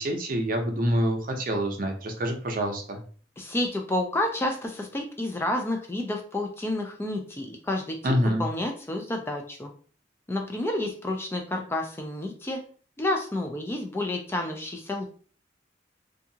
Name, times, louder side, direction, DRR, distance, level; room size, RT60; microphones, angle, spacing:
voice 1, 0.0-3.0 8.0-8.4, equal, 50° right, 4 dB, 0.6 m, -26 dB
voice 2, 3.4-9.7 10.3-12.6 13.0-15.1, left 1 dB, 15° left, 3 dB, 0.3 m, -30 dB
2.6 x 2.4 x 2.7 m, 0.42 s
head